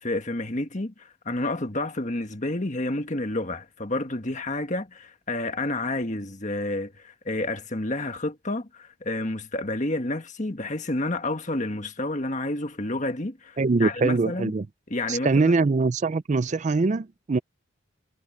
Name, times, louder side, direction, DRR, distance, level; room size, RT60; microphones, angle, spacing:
voice 1, 0.0-14.5 14.9-15.6, left 2 dB, 35° left, 1.6 m, -30 dB
voice 2, 13.6-14.7 15.1-17.4, right 3 dB, 35° right, 0.4 m, -23 dB
head